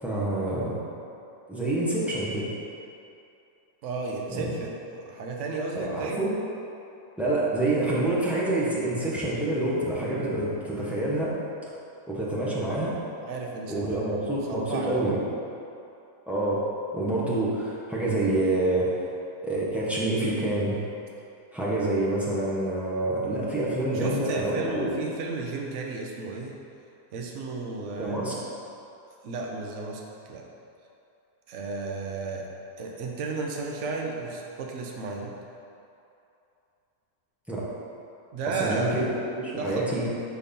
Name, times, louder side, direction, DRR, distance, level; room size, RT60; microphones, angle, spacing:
voice 1, 0.0-0.8 1.5-2.5 4.3-4.5 5.7-6.3 7.2-11.4 12.1-12.9 13.7-15.2 16.3-16.6 16.9-19.1 19.4-20.8 21.5-24.9 27.9-28.4 37.5-37.7 38.5-40.1, right 2 dB, ahead, -8 dB, 0.6 m, -27 dB
voice 2, 3.8-6.3 13.2-13.8 14.5-14.9 23.9-26.5 27.1-28.3 29.2-30.0 30.3-30.4 31.5-32.5 32.8-35.3 38.3-39.1 39.5-40.1, right 3 dB, 60° right, -1 dB, 0.9 m, -33 dB
4.5 x 4.3 x 5.2 m, 2.7 s
omnidirectional pair, 1.8 m